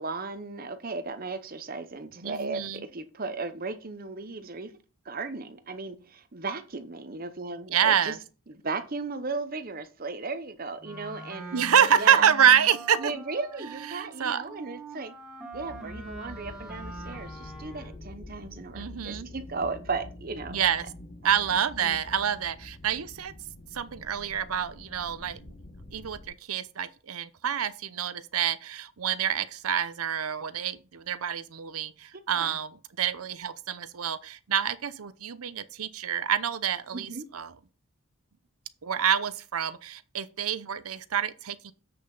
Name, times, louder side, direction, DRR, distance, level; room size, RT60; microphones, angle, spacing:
voice 1, 0.0-4.8 5.0-8.2 8.5-11.6 12.0-12.3 13.0-15.1 15.5-20.6 21.5-22.0 32.1-32.6 36.9-37.2, right 4 dB, 40° right, 0.8 m, -36 dB
voice 2, 2.2-2.8 7.7-8.2 11.5-13.1 13.9-14.4 18.7-19.3 20.5-20.8 21.2-23.3 23.7-25.4 25.9-32.7 33.0-37.5 38.8-41.7, right 8 dB, 80° right, 0.7 m, -27 dB
Wind instrument woodwind instrument, 10.8-18.1, right 2 dB, 5° right, 1.6 m, -43 dB
sound 1, 15.5-26.3, left 1 dB, 45° left, 1.2 m, -46 dB
7.8 x 6.4 x 3.9 m
head